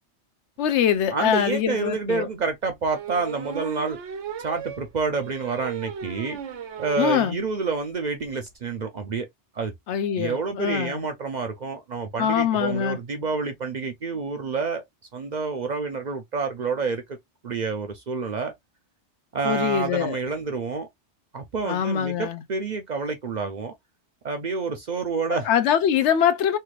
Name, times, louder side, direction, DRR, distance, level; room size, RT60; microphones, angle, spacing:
voice 1, 0.6-2.3 7.0-7.4 9.9-11.1 12.2-13.0 19.4-20.2 21.6-22.4 25.3-26.6, left 9 dB, 80° left, 0.9 m, -23 dB
voice 2, 1.1-4.0 4.4-6.4 6.8-9.3 9.5-9.7 10.2-14.8 15.1-17.2 17.4-18.5 19.3-20.9 21.3-23.7 24.2-25.5, right 4 dB, 50° right, 0.5 m, -28 dB
sound 1, 1.1-1.2 1.6-1.7 2.9-7.2 7.6-7.7 7.9-8.0 8.2-8.5, right 8 dB, 85° right, 1.0 m, -36 dB
3.3 x 2.4 x 3.0 m
omnidirectional pair, 1.2 m